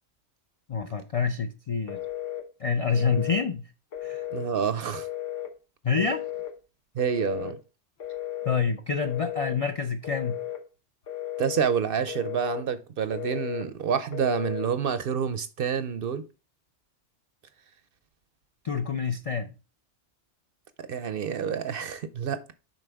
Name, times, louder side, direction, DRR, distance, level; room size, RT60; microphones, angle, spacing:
voice 1, 0.7-2.0 2.6-3.6 4.0-4.2 5.8-6.2 8.4-10.4 18.6-19.5, left 5 dB, 60° left, 0.3 m, -27 dB
Telephone, 1.9-2.5 2.9-3.5 3.9-4.5 4.9-5.5 6.0-6.5 7.0-7.6 8.0-8.6 9.0-9.6 10.0-10.6 11.1-11.6 12.1-12.7 13.1-13.7 14.1-14.7, left 12 dB, 90° left, 1.4 m, -35 dB
voice 2, 4.3-5.1 6.9-7.6 11.4-16.3 20.9-22.5, right 7 dB, 60° right, 0.7 m, -28 dB
7.4 x 5.3 x 3.4 m
omnidirectional pair, 1.2 m